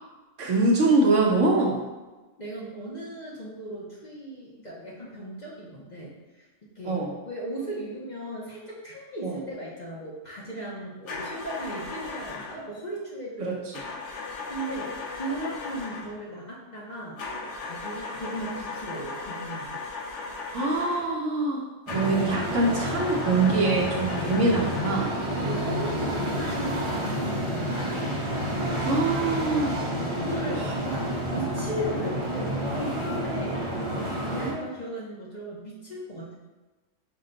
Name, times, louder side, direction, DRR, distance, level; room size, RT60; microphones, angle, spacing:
voice 1, 0.4-1.8 6.9-7.1 9.2-9.3 13.4-13.6 20.5-21.6 21.9-25.2 28.8-29.7 30.6-30.8, right 2 dB, 70° right, -1 dB, 1.1 m, -24 dB
voice 2, 2.4-6.1 6.4-7.0 7.2-13.5 13.8-17.2 17.6-19.8 25.3-28.1 29.3-29.4 30.1-36.3, right 1 dB, 40° left, -5 dB, 0.8 m, -37 dB
sound 1, 11.1-12.7 13.7-16.2 17.2-21.2 21.9-25.1, left 3 dB, 65° left, 1.0 m, -37 dB
sound 2, 21.9-34.5, equal, 30° right, 0.6 m, -29 dB
5.7 x 2.2 x 3.8 m, 1.2 s
omnidirectional pair, 1.4 m